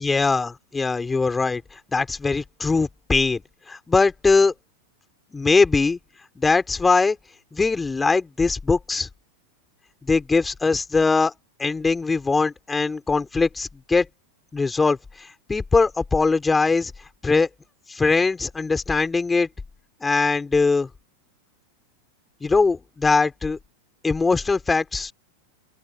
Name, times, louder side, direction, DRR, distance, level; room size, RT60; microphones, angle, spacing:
voice 1, 0.0-1.6 1.9-3.4 3.7-4.5 5.3-6.0 6.4-7.2 7.5-9.1 10.0-11.3 11.6-14.1 14.5-16.9 17.2-17.5 17.9-19.5 20.0-20.9 22.4-23.6 24.0-25.1, left 4 dB, 10° left, 4.6 m, -21 dB
open air
figure-of-eight pair, 90°, 0 cm